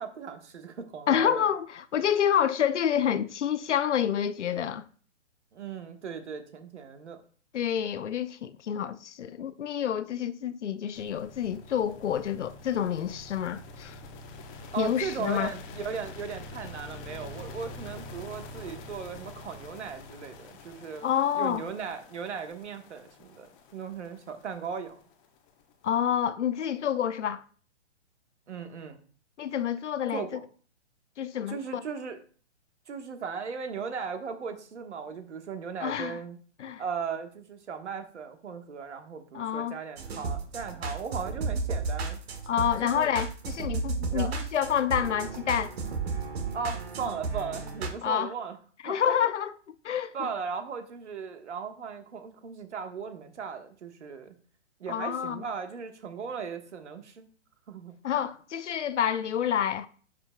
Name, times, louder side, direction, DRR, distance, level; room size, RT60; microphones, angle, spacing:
voice 1, 0.0-1.4 5.5-7.2 14.7-21.1 21.3-25.0 28.5-29.0 30.1-30.4 31.5-32.2 32.9-36.4 36.8-42.2 42.8-43.1 44.1-44.3 46.5-48.6 48.8-49.3 50.1-54.3 54.8-57.3 57.7-58.3, right 6 dB, 70° right, 1.4 m, -37 dB
voice 2, 1.1-4.8 7.5-14.0 14.8-15.5 21.0-21.6 25.8-27.4 29.4-30.3 31.2-31.8 35.8-36.2 36.6-36.8 39.3-39.7 42.5-45.7 48.0-48.3 48.8-50.3 54.9-55.4 58.0-59.9, left 9 dB, 75° left, 0.6 m, -28 dB
sound 1, 11.0-26.1, left 2 dB, 30° left, 1.0 m, -46 dB
sound 2, 40.0-47.9, right 4 dB, 55° right, 1.6 m, -33 dB
11.0 x 5.1 x 2.2 m
hypercardioid pair, 130°, 36 cm